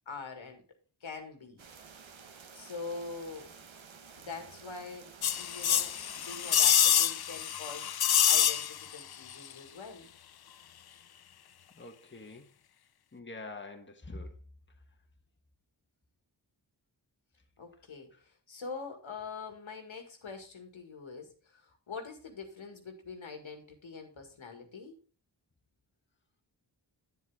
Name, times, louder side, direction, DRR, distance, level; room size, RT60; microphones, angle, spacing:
voice 1, 0.1-0.6 1.0-1.6 2.5-3.5 4.2-7.9 8.2-10.1 17.6-25.0, left 4 dB, 85° left, 1.9 m, -44 dB
sound 1, 1.6-6.7, right 6 dB, 80° right, 1.2 m, -52 dB
sound 2, 5.2-9.0 9.3-9.4, left 9 dB, 55° left, 0.5 m, -26 dB
voice 2, 11.8-12.5 13.1-14.4, left 2 dB, 25° left, 1.4 m, -45 dB
9.4 x 7.5 x 3.5 m
wide cardioid pair, 60°, 46 cm